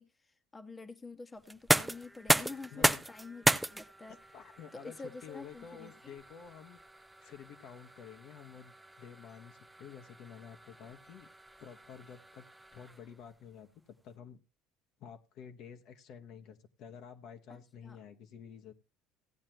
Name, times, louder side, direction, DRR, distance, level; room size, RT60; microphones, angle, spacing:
voice 1, 0.0-3.4 3.7-4.2 4.7-5.9 17.5-18.0, left 3 dB, 20° left, 8 dB, 1.2 m, -48 dB
sound 1, 1.4-13.2, right 1 dB, 10° right, 0.6 m, -35 dB
voice 2, 2.7-3.0 4.1-6.8 7.2-8.7 9.0-11.3 11.6-14.4 15.0-18.7, left 8 dB, 60° left, 6 dB, 1.3 m, -50 dB
16.0 x 8.8 x 3.0 m, 0.27 s
hypercardioid pair, 75°, 0 cm